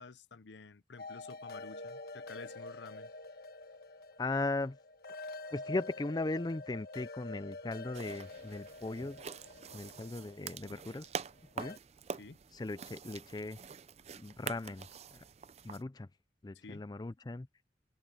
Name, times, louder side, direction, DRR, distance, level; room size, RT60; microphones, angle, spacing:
voice 1, 0.0-3.1 12.2-12.4 16.5-16.9, left 4 dB, 80° left, 0.7 m, -51 dB
sound 1, 1.0-11.8, left 2 dB, 55° left, 1.6 m, -47 dB
voice 2, 4.2-4.8 5.5-9.2 9.7-11.1 11.6-11.8 12.5-13.6 14.1-15.2 15.6-16.1 16.4-17.5, left 2 dB, 20° left, 0.4 m, -38 dB
sound 2, 7.9-15.8, right 6 dB, 35° right, 0.5 m, -46 dB
head